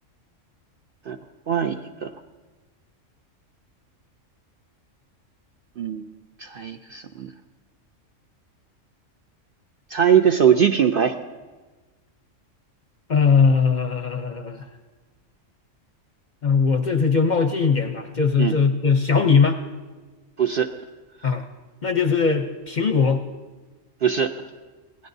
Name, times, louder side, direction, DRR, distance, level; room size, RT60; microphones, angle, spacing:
voice 1, 1.5-2.1 5.8-6.1 6.4-7.3 9.9-11.1 18.4-18.6 20.4-20.7 21.2-21.3 24.0-24.3, right 8 dB, 60° right, 6 dB, 0.6 m, -21 dB
voice 2, 13.1-14.6 16.4-19.6 21.2-21.4 21.8-23.2, left 5 dB, 45° left, 6 dB, 0.7 m, -20 dB
26.0 x 17.5 x 2.7 m, 1.3 s
omnidirectional pair, 1.4 m